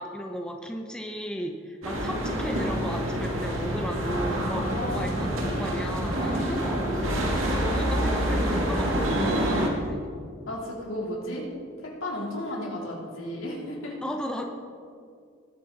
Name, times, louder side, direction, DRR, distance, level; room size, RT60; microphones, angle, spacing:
voice 1, 0.0-6.8 7.2-10.1 14.0-14.4, equal, 5° left, 2 dB, 0.8 m, -35 dB
sound 1, 1.8-9.7, equal, 90° right, 2.1 m, -27 dB
voice 2, 4.7-5.3 6.2-6.8 10.5-11.4 11.8-14.0, left 1 dB, 85° left, -4 dB, 3.8 m, -34 dB
19.5 x 9.1 x 4.2 m, 2.2 s
head